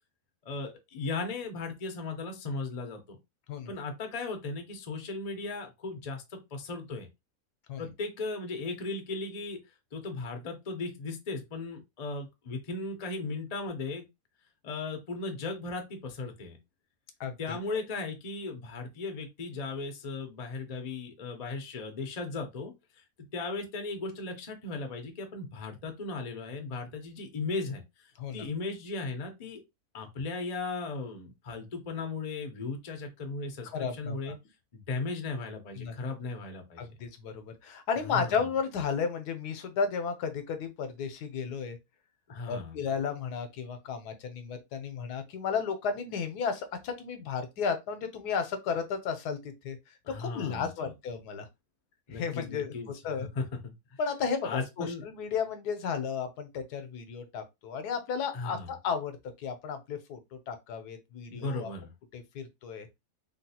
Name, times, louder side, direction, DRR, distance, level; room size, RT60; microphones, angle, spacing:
voice 1, 0.4-3.2 3.7-7.1 7.8-9.6 9.9-14.1 14.6-16.6 17.4-23.0 23.3-27.8 28.3-29.6 29.9-34.4 34.7-36.9 38.0-38.4 42.3-42.8 50.0-50.9 52.1-54.0 54.4-55.0 58.3-58.7 61.3-61.9, left 3 dB, 45° left, 0.5 m, -37 dB
voice 2, 17.2-17.6 28.2-28.5 33.7-34.4 35.8-35.9 36.8-41.8 42.5-49.8 50.2-51.5 52.1-52.7 53.0-53.3 54.0-61.7 62.1-62.9, left 6 dB, 80° left, 1.2 m, -33 dB
3.5 x 2.3 x 2.8 m
omnidirectional pair, 1.7 m